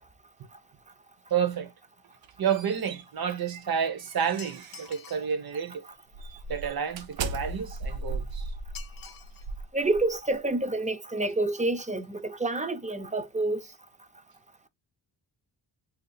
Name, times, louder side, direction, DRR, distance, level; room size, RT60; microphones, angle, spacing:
voice 1, 1.3-1.7 2.4-5.8 6.5-8.5, right 8 dB, 50° right, 0.9 m, -30 dB
sound 1, 2.0-5.0 5.5-5.7 6.1-10.4, right 3 dB, 80° right, 0.7 m, -38 dB
sound 2, 4.4-5.4 8.7-9.5 9.9-10.0 10.8-10.9 11.2-11.3 11.6-11.8 12.0-12.1, left 7 dB, 50° left, 0.6 m, -47 dB
voice 2, 9.7-13.6, right 2 dB, 15° right, 0.5 m, -28 dB
2.7 x 2.4 x 3.9 m
cardioid pair, 60°, 45 cm